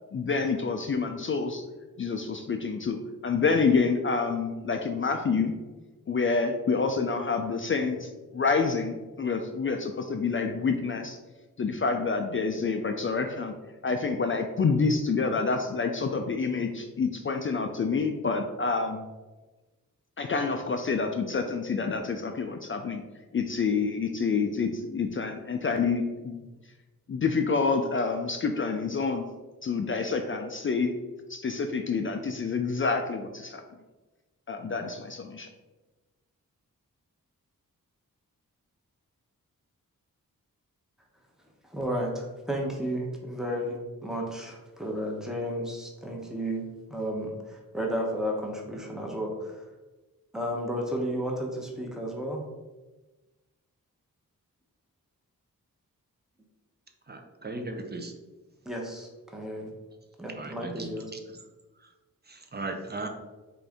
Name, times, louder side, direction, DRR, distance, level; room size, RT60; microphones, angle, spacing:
voice 1, 0.1-1.7 2.0-5.5 6.1-11.2 11.6-13.5 13.8-19.0 20.2-23.0 23.3-26.5 27.1-29.2 29.6-30.9 31.3-33.6 34.5-35.5, left 4 dB, 35° left, 5 dB, 0.4 m, -28 dB
voice 2, 41.6-49.6 50.3-52.4 58.7-59.7 60.2-61.1, equal, ahead, -1 dB, 0.9 m, -33 dB
voice 3, 57.1-58.1 60.4-61.2 62.3-63.1, right 2 dB, 30° right, 4 dB, 0.7 m, -37 dB
3.7 x 2.5 x 3.4 m, 1.2 s
cardioid pair, 45°, 36 cm